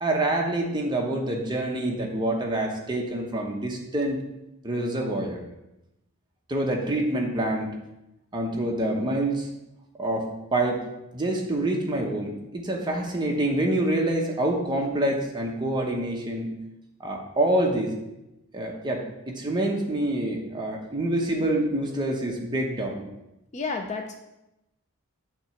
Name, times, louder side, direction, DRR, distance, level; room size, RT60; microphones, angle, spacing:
voice 1, 0.0-4.2 4.6-5.4 6.5-7.7 8.3-9.5 10.0-10.8 11.1-16.5 17.0-17.9 18.5-19.0 19.3-23.1, right 1 dB, 20° right, 0 dB, 1.0 m, -26 dB
voice 2, 23.5-24.1, left 4 dB, 30° left, 5 dB, 0.5 m, -31 dB
7.7 x 3.0 x 5.7 m, 0.91 s
head